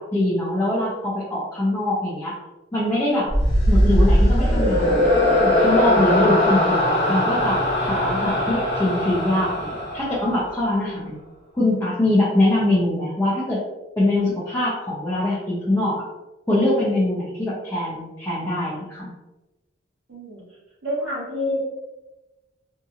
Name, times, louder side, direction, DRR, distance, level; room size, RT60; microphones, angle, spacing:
voice 1, 0.0-2.3 2.7-3.3 3.7-4.9 5.4-11.1 11.5-13.6 14.0-16.0 16.5-19.1, left 1 dB, 15° left, -8 dB, 0.6 m, -23 dB
sound 1, 3.3-10.7, left 1 dB, 35° left, 1.4 m, -20 dB
voice 2, 20.1-20.4 20.8-21.6, left 1 dB, 80° right, -9 dB, 0.9 m, -27 dB
2.8 x 2.6 x 2.4 m, 1.0 s
head